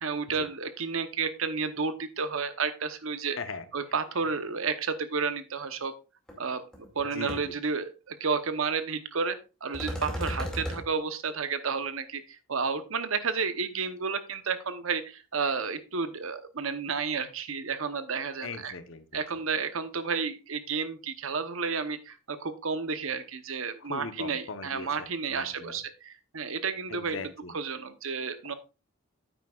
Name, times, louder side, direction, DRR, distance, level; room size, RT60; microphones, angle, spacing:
voice 1, 0.0-3.4 3.7-5.9 6.4-18.7 19.1-28.5, right 5 dB, 70° right, 11 dB, 0.9 m, -31 dB
sound 1, 6.3-6.4 6.7-7.0 7.3-7.4 9.7-10.8, equal, 5° left, 2.2 m, -34 dB
voice 2, 7.1-7.5 18.4-19.2 23.8-25.8 26.9-27.5 28.4-28.5, left 4 dB, 65° left, 10 dB, 0.9 m, -40 dB
9.3 x 9.0 x 2.4 m, 0.30 s
head